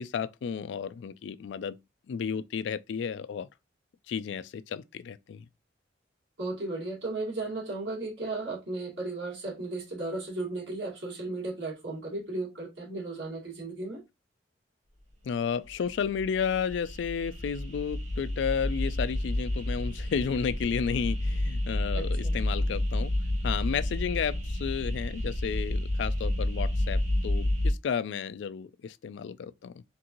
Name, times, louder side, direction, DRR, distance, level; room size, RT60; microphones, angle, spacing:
voice 1, 0.0-1.8 2.1-3.5 4.1-5.5 15.2-23.1 23.4-29.8, left 6 dB, 70° left, 0.3 m, -32 dB
voice 2, 6.4-14.0 21.9-22.3, right 2 dB, 70° right, 1.9 m, -35 dB
sound 1, 15.7-27.7, left 1 dB, 40° right, 1.4 m, -30 dB
3.9 x 2.6 x 2.9 m
head